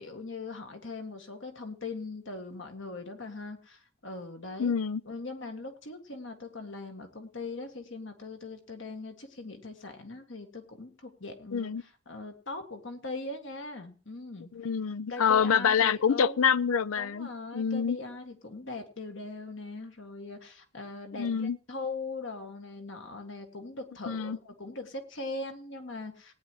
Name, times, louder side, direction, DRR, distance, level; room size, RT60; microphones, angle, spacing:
voice 1, 0.0-4.7 5.1-14.5 15.1-16.4 17.0-26.3, left 3 dB, 60° left, 1.8 m, -40 dB
voice 2, 4.6-5.0 11.5-11.8 14.5-18.0 21.1-21.6 24.1-24.4, left 7 dB, 80° left, 0.5 m, -26 dB
19.0 x 9.5 x 3.0 m
head